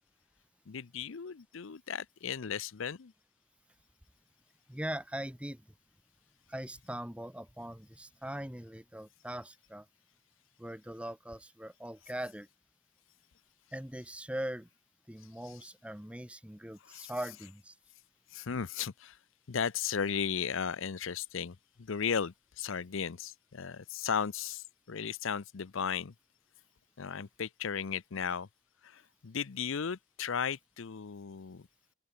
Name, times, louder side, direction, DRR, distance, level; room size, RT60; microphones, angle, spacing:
voice 1, 0.7-3.1 16.9-17.1 18.3-19.2 19.5-26.1 27.0-28.5 28.8-31.7, left 7 dB, 60° left, 0.6 m, -35 dB
voice 2, 4.7-5.6 6.5-9.8 10.6-12.5 13.7-14.7 15.1-17.7, right 1 dB, 5° right, 1.3 m, -41 dB
open air
head